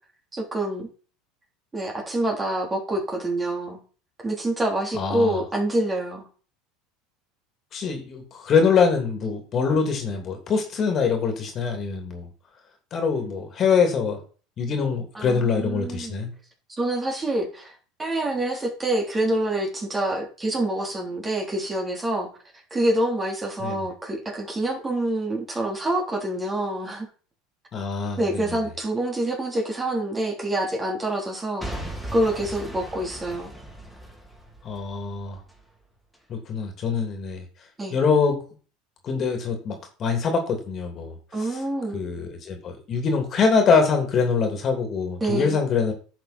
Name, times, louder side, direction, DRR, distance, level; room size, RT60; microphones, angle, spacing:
voice 1, 0.3-0.9 1.7-3.8 4.2-6.3 15.2-16.2 16.8-17.7 18.0-22.3 22.7-27.1 28.2-31.7 32.1-33.5 37.8-38.0 41.3-42.0 45.2-45.6, right 1 dB, 20° right, 0 dB, 3.5 m, -26 dB
voice 2, 4.9-5.4 7.7-12.3 12.9-14.2 14.6-16.3 23.6-23.9 27.7-28.5 34.6-35.4 36.3-37.4 37.9-38.4 39.0-41.6 41.9-45.9, left 5 dB, 40° left, 4 dB, 2.9 m, -24 dB
Boom / Shatter / Crushing, 31.6-35.6 36.1-36.2, right 1 dB, ahead, 3.3 m, -38 dB
10.5 x 6.3 x 4.4 m, 0.38 s
supercardioid pair, 100°, 0 cm